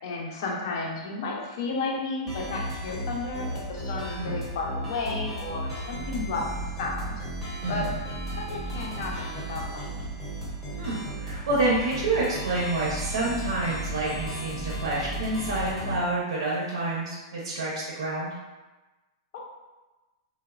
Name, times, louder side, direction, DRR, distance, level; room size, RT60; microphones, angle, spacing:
voice 1, 0.0-6.4 6.8-7.2 7.7-7.9 8.4-10.2 19.3-19.4, left 3 dB, 50° left, -1 dB, 0.5 m, -33 dB
sound 1, 2.3-16.0, right 1 dB, 5° left, 0.7 m, -34 dB
voice 2, 7.6-7.9 10.8-18.3, right 2 dB, 85° right, -6 dB, 0.7 m, -28 dB
3.0 x 2.0 x 2.3 m, 1.2 s
supercardioid pair, 175°, 3 cm